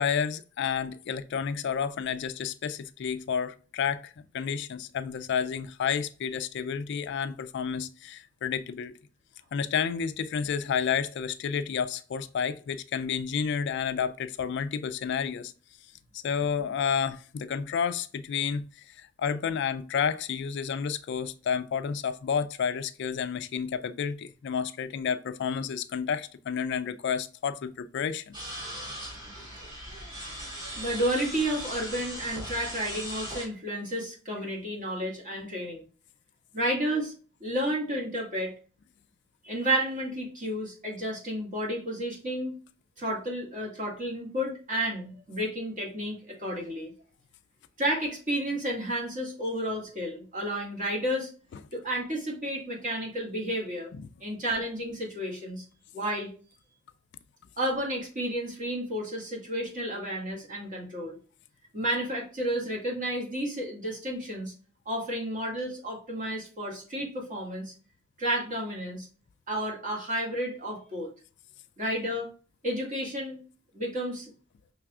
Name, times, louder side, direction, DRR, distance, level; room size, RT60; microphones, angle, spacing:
voice 1, 0.0-8.9 9.5-15.5 16.1-28.3 53.9-54.1, left 7 dB, 60° left, 0.3 m, -30 dB
sound 1, 28.3-33.5, equal, 20° right, 2.3 m, -38 dB
voice 2, 30.8-35.8 36.5-37.1 37.4-38.5 39.4-42.6 43.0-46.9 47.8-51.3 51.7-53.9 54.2-55.6 55.9-56.3 57.6-61.2 61.7-64.5 64.9-67.7 68.2-69.1 69.5-71.1 71.8-72.3 72.6-73.4 73.7-74.3, right 1 dB, 40° right, 1.9 m, -31 dB
5.9 x 3.3 x 2.3 m
head